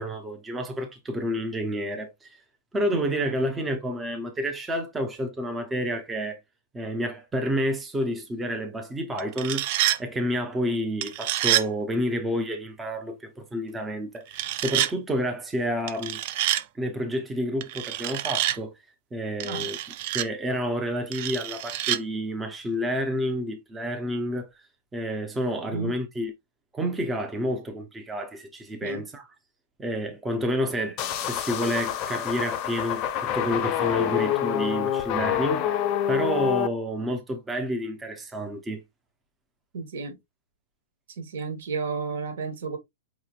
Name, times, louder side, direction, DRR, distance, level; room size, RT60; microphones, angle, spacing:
voice 1, 0.0-2.4 2.7-6.4 6.7-9.7 10.0-16.2 16.8-18.7 19.1-19.8 20.1-24.6 24.9-26.3 26.7-29.3 29.8-35.8 36.1-38.8, equal, 10° right, 0.7 m, -29 dB
voice 2, 2.9-3.3 19.4-19.7 25.7-26.0 28.8-29.0 39.7-40.2 41.2-42.8, right 4 dB, 65° right, 1.5 m, -32 dB
sound 1, 9.2-10.0 11.0-11.7 14.3-14.9 15.9-16.6 17.6-18.6 19.4-20.3 21.1-22.0, right 13 dB, 45° right, 0.4 m, -27 dB
sound 2, 31.0-36.7, left 10 dB, 30° left, 0.6 m, -27 dB
4.9 x 3.1 x 2.4 m
hypercardioid pair, 150°, 0 cm